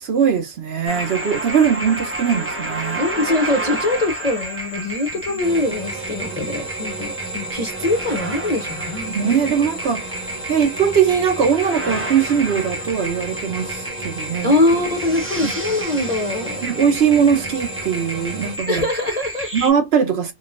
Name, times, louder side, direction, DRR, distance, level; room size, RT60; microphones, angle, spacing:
voice 1, 0.0-3.0 9.1-10.1 10.5-14.5 16.6-18.8 19.5-20.3, right 7 dB, 60° right, 0.8 m, -20 dB
sound 1, 0.9-19.7, right 1 dB, 15° right, 0.5 m, -30 dB
voice 2, 3.0-9.4 14.4-16.7 18.7-19.5, left 2 dB, 45° left, 0.5 m, -22 dB
sound 2, 5.4-18.6, right 3 dB, 45° right, 1.5 m, -34 dB
3.9 x 2.4 x 2.4 m
omnidirectional pair, 1.4 m